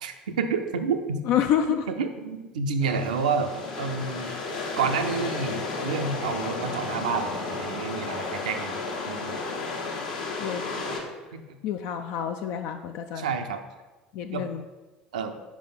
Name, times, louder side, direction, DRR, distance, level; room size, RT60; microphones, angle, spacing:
voice 1, 0.0-1.2 1.7-3.5 3.8-4.4 4.8-9.4 11.3-11.6 13.2-13.6 14.3-14.5 15.1-15.4, right 5 dB, 70° right, 7 dB, 0.5 m, -29 dB
voice 2, 1.2-1.8 10.4-10.6 11.6-13.3 14.1-14.6, left 9 dB, 55° left, 6 dB, 0.3 m, -27 dB
sound 1, 2.8-11.0, left 3 dB, 70° left, 1.1 m, -33 dB
5.0 x 4.8 x 5.5 m, 1.2 s
figure-of-eight pair, 65°, 4 cm